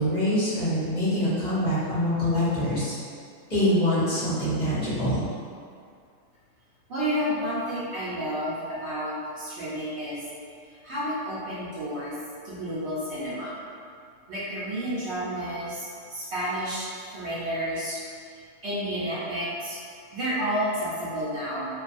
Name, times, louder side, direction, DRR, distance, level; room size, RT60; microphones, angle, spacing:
voice 1, 0.0-2.9 3.5-5.2, equal, 40° left, -13 dB, 0.9 m, -24 dB
voice 2, 6.9-10.2 10.8-12.2 12.4-13.5 14.3-16.9 17.1-18.0 18.6-19.8 20.1-21.7, equal, 65° right, -9 dB, 0.9 m, -30 dB
2.6 x 2.3 x 2.4 m, 2.3 s
omnidirectional pair, 1.4 m